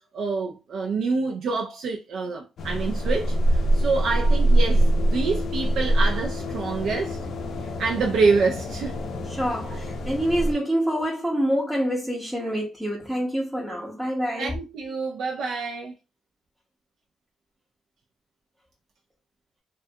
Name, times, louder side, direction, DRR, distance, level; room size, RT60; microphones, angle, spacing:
voice 1, 0.1-7.2 7.6-9.0 14.4-15.9, right 4 dB, 70° right, 0.4 m, -27 dB
sound 1, 2.6-10.5, right 1 dB, 60° left, 0.5 m, -24 dB
voice 2, 9.3-14.6, equal, 10° right, 0.6 m, -26 dB
2.3 x 2.2 x 2.6 m
cardioid pair, 90°, 0 cm